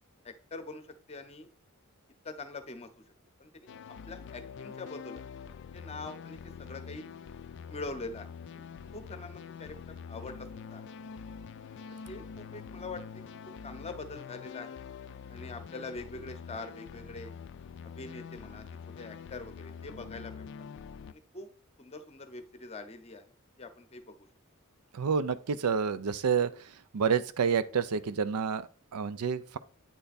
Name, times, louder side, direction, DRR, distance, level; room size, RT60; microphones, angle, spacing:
voice 1, 0.2-0.8 1.1-1.5 2.2-2.9 3.4-3.7 4.1-5.2 5.7-7.0 7.7-8.6 8.9-10.8 11.9-13.2 13.6-14.8 15.3-17.3 17.8-18.6 19.0-20.4 21.1-21.5 21.8-23.3 23.6-24.3, left 3 dB, 30° left, 0.7 m, -43 dB
sound 1, 3.7-21.1, left 6 dB, 55° left, 0.3 m, -45 dB
voice 2, 24.9-26.5 26.9-29.6, right 6 dB, 85° right, 0.5 m, -29 dB
8.9 x 3.4 x 4.1 m
head